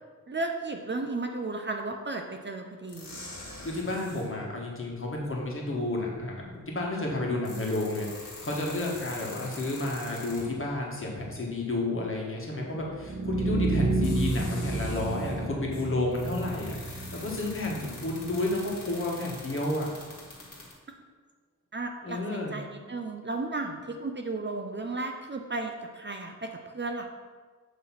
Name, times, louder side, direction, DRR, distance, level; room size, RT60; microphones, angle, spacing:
voice 1, 0.3-3.2 21.7-27.0, right 3 dB, 35° right, 4 dB, 0.6 m, -34 dB
sound 1, 2.9-4.3 5.8-5.9 7.2-10.7 12.9-13.0 13.9-15.4 15.7-20.7, left 2 dB, 65° left, 2.0 m, -44 dB
voice 2, 3.6-19.9 22.0-22.5, left 2 dB, 40° left, -2 dB, 1.5 m, -31 dB
sound 2, 12.9-18.9, right 2 dB, 70° right, 1.4 m, -31 dB
8.2 x 3.2 x 5.7 m, 1.5 s
wide cardioid pair, 115°, 32 cm